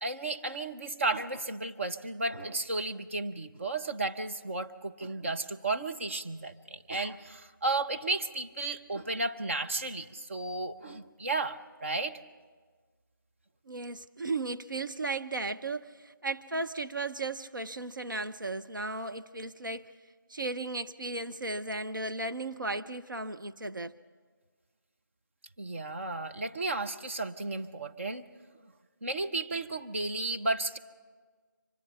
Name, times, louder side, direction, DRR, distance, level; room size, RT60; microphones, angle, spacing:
voice 1, 0.0-12.2 25.6-28.2 29.0-30.8, right 2 dB, 40° right, 0.8 m, -33 dB
voice 2, 13.7-19.9 20.3-23.9, right 2 dB, 70° right, 0.7 m, -35 dB
24.5 x 20.0 x 5.7 m
figure-of-eight pair, 165°, 11 cm